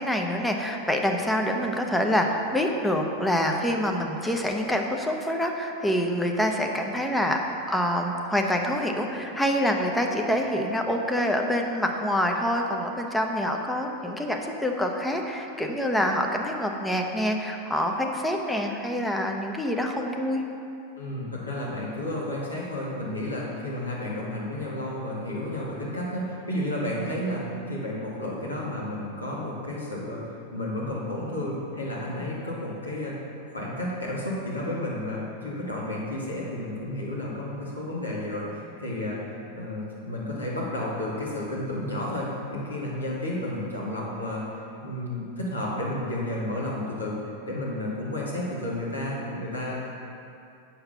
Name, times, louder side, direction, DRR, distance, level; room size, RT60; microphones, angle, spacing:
voice 1, 0.0-7.4 7.7-20.4, equal, 5° left, 2 dB, 0.9 m, -26 dB
voice 2, 21.0-33.2 33.5-44.5 44.8-47.2 47.5-49.9, left 1 dB, 80° left, -6 dB, 2.2 m, -32 dB
8.0 x 6.6 x 5.7 m, 2.6 s
figure-of-eight pair, 90°, 0 cm